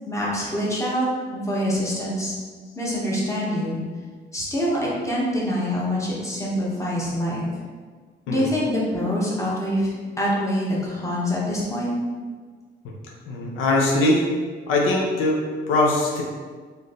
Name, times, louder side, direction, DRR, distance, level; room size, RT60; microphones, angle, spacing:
voice 1, 0.1-2.3 2.8-3.8 4.3-7.5 8.3-9.9 10.2-11.9, equal, 15° left, -5 dB, 1.1 m, -25 dB
voice 2, 13.3-14.2 14.7-15.4 15.7-16.2, left 2 dB, 90° left, -2 dB, 0.7 m, -21 dB
3.1 x 2.7 x 4.1 m, 1.5 s
cardioid pair, 90°, 20 cm